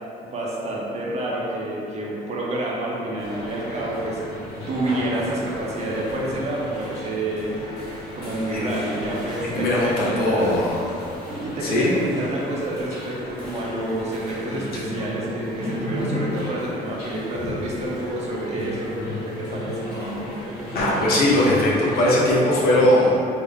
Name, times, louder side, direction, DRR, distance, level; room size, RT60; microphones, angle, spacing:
voice 1, 0.2-4.2 4.7-7.6 8.1-10.6 11.3-19.8, right 1 dB, 40° right, -4 dB, 0.7 m, -28 dB
sound 1, 3.2-22.2, left 1 dB, 90° left, 1.0 m, -34 dB
voice 2, 9.5-11.1 11.6-11.9 17.4-17.5 20.7-23.3, left 1 dB, 65° left, -5 dB, 0.8 m, -20 dB
3.4 x 2.1 x 3.6 m, 2.6 s
cardioid pair, 110°, 17 cm